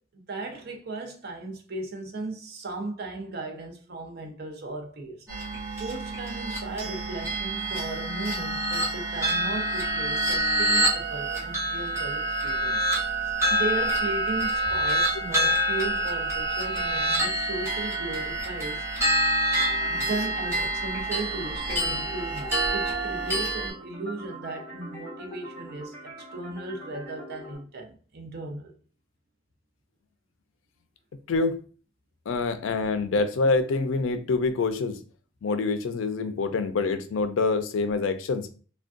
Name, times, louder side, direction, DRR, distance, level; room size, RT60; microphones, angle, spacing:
voice 1, 0.1-5.3 5.8-12.9 13.5-18.8 19.9-28.7, right 2 dB, 55° right, 0.6 m, -36 dB
sound 1, 5.3-23.7, right 1 dB, 15° right, 1.0 m, -27 dB
sound 2, 19.6-27.6, equal, 5° left, 1.3 m, -43 dB
voice 2, 32.3-35.0 35.4-38.5, left 3 dB, 75° left, 0.4 m, -26 dB
3.4 x 2.2 x 2.4 m
head